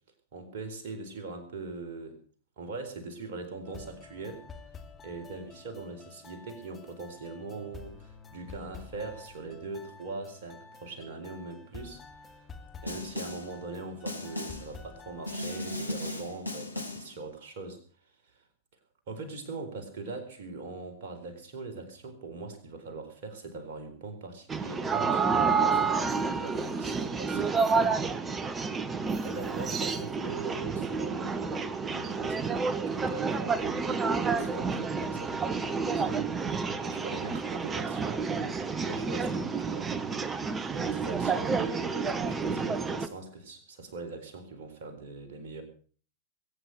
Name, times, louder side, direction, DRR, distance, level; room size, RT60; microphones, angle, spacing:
voice 1, 0.3-2.2 2.6-4.4 5.0-12.4 12.8-17.8 18.3-18.4 19.1-27.6 29.2-38.3 38.7-39.9 40.7-45.6, right 3 dB, 50° right, 5 dB, 4.1 m, -41 dB
sound 1, 3.6-15.8, left 4 dB, 20° left, 2.6 m, -49 dB
Snare drum, 12.9-13.5 14.1-14.7 15.3-17.1, left 2 dB, 85° left, 1.7 m, -36 dB
sound 2, 24.5-43.1, right 5 dB, 20° right, 1.2 m, -29 dB
21.5 x 9.5 x 6.5 m, 0.43 s
figure-of-eight pair, 90°, 0 cm